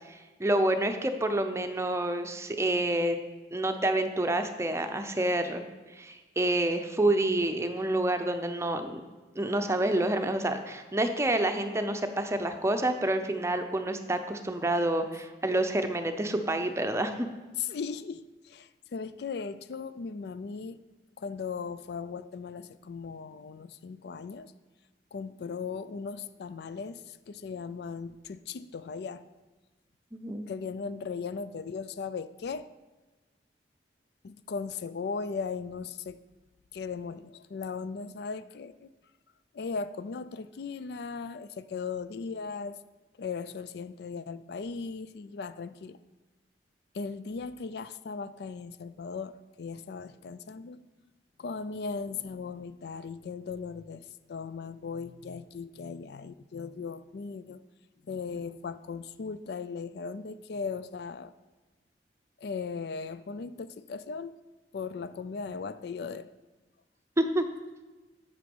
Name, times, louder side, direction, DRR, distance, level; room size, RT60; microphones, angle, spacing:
voice 1, 0.1-3.2 3.5-5.6 5.9-9.0 9.4-17.3 30.1-30.5 67.2-67.5, right 1 dB, 15° right, 7 dB, 0.6 m, -28 dB
voice 2, 17.6-20.8 21.2-24.5 25.1-29.2 30.5-32.7 34.2-36.2 36.7-38.9 39.5-42.8 43.2-46.0 46.9-50.8 51.4-57.6 58.0-61.3 62.4-64.4 64.7-66.3, left 5 dB, 65° left, 14 dB, 0.4 m, -38 dB
8.0 x 6.8 x 5.4 m, 1.2 s
head